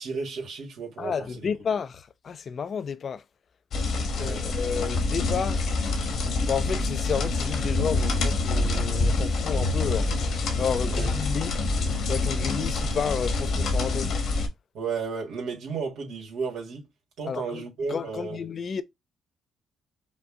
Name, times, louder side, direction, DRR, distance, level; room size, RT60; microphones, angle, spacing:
voice 1, 0.0-1.5 4.1-4.5 10.8-11.1 14.7-16.9 17.2-18.4, right 5 dB, 80° right, 1.8 m, -33 dB
voice 2, 1.0-3.2 4.2-5.7 6.4-10.1 10.6-11.5 12.1-14.1 17.3-17.6 17.9-18.8, left 6 dB, 50° left, 0.5 m, -31 dB
sound 1, 3.7-14.5, left 3 dB, 65° left, 1.2 m, -26 dB
5.2 x 2.3 x 3.7 m
cardioid pair, 90°, 0 cm